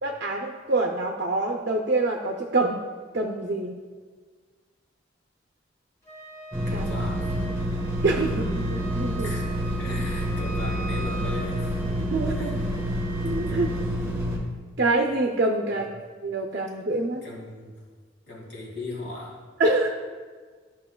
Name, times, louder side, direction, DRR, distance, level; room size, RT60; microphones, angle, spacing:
voice 1, 0.0-2.9 3.1-3.8 6.7-6.8 8.0-9.4 12.1-12.6 13.2-13.7 14.8-15.9 16.2-17.3 19.6-19.9, right 2 dB, 55° right, 1 dB, 0.5 m, -25 dB
Wind instrument woodwind instrument, 6.0-13.9, right 2 dB, 15° left, 1.4 m, -42 dB
sound 1, 6.5-14.4, equal, 15° right, 1.2 m, -28 dB
voice 2, 6.6-7.3 9.2-9.4 9.8-11.8 12.4-12.9 13.5-14.1 15.7-15.8 17.2-17.8 18.3-19.4, left 2 dB, 75° left, -3 dB, 2.1 m, -38 dB
12.0 x 5.7 x 2.2 m, 1.5 s
head